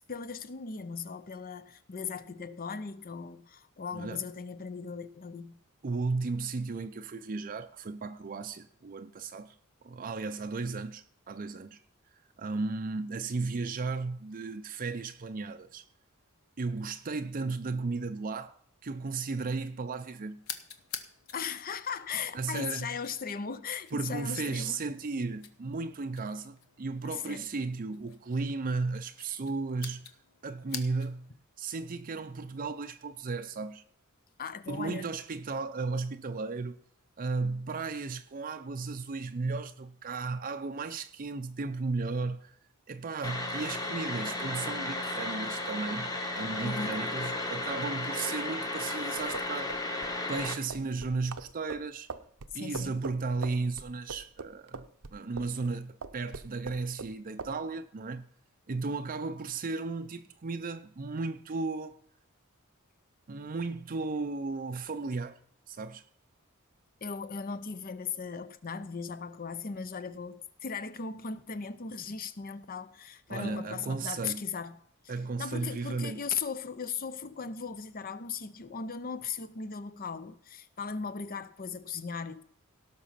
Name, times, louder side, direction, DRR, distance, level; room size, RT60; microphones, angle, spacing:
voice 1, 0.1-5.6 21.3-24.8 27.0-27.5 34.4-35.1 46.6-47.0 52.5-53.0 67.0-74.8 75.0-82.4, left 5 dB, 45° left, 0.7 m, -38 dB
voice 2, 5.8-9.5 9.8-11.8 12.4-15.9 16.6-18.5 18.8-20.4 22.3-23.0 23.9-30.1 30.4-33.8 34.7-36.8 37.2-42.6 42.9-46.1 46.4-49.7 50.3-52.1 52.5-54.8 55.1-58.3 58.7-62.0 63.3-65.4 65.7-66.0 73.3-74.4 75.1-76.2, right 3 dB, 40° right, 0.5 m, -35 dB
sound 1, 20.4-31.3, left 8 dB, 75° left, 1.1 m, -48 dB
sound 2, 43.2-50.5, left 2 dB, 15° left, 1.4 m, -34 dB
sound 3, 49.2-55.7 56.0-57.1 57.4-57.6, right 4 dB, 70° right, 0.7 m, -42 dB
17.0 x 6.1 x 5.7 m
head